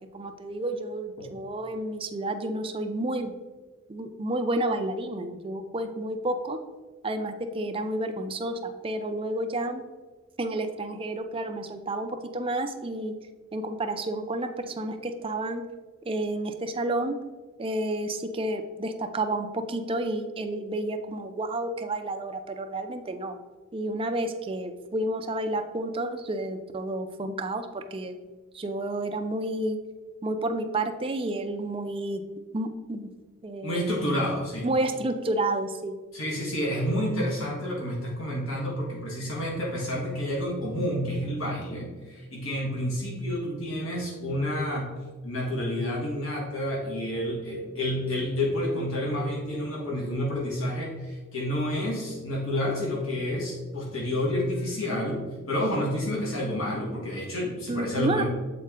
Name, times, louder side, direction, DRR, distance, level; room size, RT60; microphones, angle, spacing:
voice 1, 0.1-3.3 3.9-6.6 7.0-9.8 10.4-13.1 13.5-15.6 16.0-17.2 17.6-23.4 23.7-28.2 28.5-29.8 30.2-32.2 32.5-33.1 33.4-34.1 34.6-36.0 57.7-58.2, right 1 dB, 25° right, 7 dB, 0.4 m, -30 dB
voice 2, 33.6-34.7 36.1-44.9 45.2-58.2, left 1 dB, 80° left, -3 dB, 1.5 m, -29 dB
7.6 x 4.2 x 3.7 m, 1.3 s
head